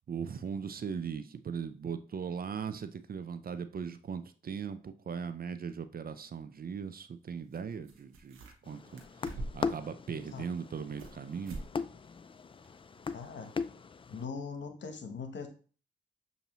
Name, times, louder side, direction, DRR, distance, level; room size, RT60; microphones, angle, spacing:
voice 1, 0.1-11.6, right 6 dB, 45° right, 0.5 m, -39 dB
sound 1, 7.5-7.6 7.8-8.7 9.0-9.8 10.3-11.2 11.4-11.7 12.0-12.1 12.6-12.7, right 2 dB, 85° right, 0.9 m, -44 dB
sound 2, 8.7-14.2, left 5 dB, 25° left, 0.3 m, -39 dB
voice 2, 13.1-13.5 14.1-15.5, left 5 dB, 60° left, 1.0 m, -40 dB
6.5 x 2.7 x 3.0 m
supercardioid pair, 45°, 21 cm